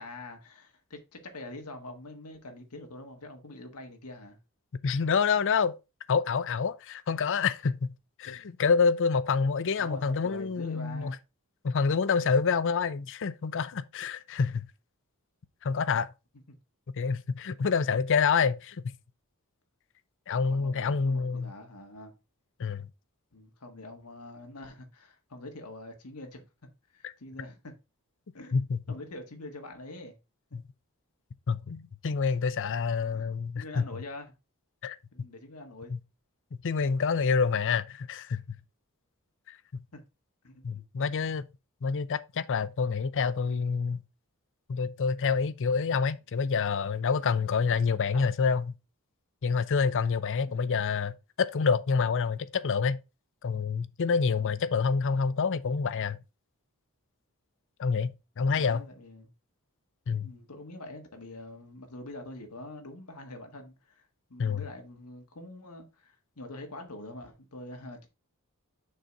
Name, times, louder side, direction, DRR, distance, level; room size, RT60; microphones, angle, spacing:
voice 1, 0.0-4.4 9.8-11.2 16.5-16.6 20.4-22.1 23.3-27.7 28.3-28.6 28.9-30.2 30.5-30.6 33.1-33.3 33.5-34.3 35.1-35.9 39.9-40.0 40.4-40.8 48.1-48.3 50.5-50.8 54.4-54.6 58.4-59.3 60.2-64.0 64.3-68.1, left 2 dB, 85° left, 1.6 m, -45 dB
voice 2, 4.8-5.7 6.1-7.9 8.2-11.2 11.6-14.6 15.6-16.1 17.0-18.9 20.3-21.5 22.6-22.9 28.5-28.8 30.5-30.6 31.5-33.9 34.8-35.0 35.9-36.0 36.5-38.4 39.5-39.8 40.6-41.4 41.8-44.0 44.7-48.7 49.4-53.0 53.4-56.2 57.8-58.8 60.1-60.3 64.4-64.6, left 5 dB, 60° left, 0.5 m, -27 dB
6.6 x 4.0 x 4.5 m
head